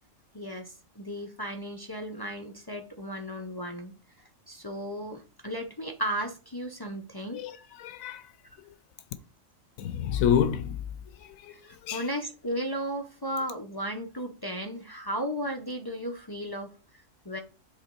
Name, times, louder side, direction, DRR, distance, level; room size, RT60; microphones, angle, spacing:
voice 1, 0.3-4.0 4.5-7.6 11.5-16.7 17.2-17.4, equal, 35° left, 0.4 m, -35 dB
voice 2, 7.3-8.2 9.8-10.8 11.2-12.1, left 9 dB, 90° left, 1.0 m, -29 dB
7.5 x 2.9 x 4.4 m
omnidirectional pair, 1.4 m